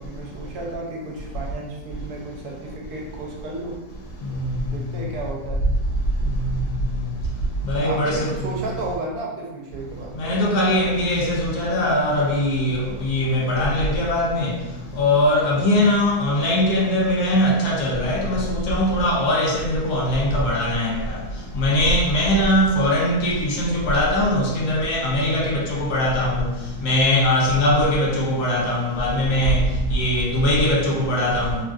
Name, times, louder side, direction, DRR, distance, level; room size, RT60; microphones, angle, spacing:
voice 1, 0.0-3.8 4.7-5.7 7.8-10.2, right 2 dB, 75° right, 1.1 m, -32 dB
voice 2, 7.6-8.6 10.2-14.5 15.0-21.2 21.5-26.5 26.8-29.6 29.9-31.6, left 1 dB, 75° left, 1.2 m, -21 dB
3.2 x 2.4 x 2.3 m
omnidirectional pair, 1.7 m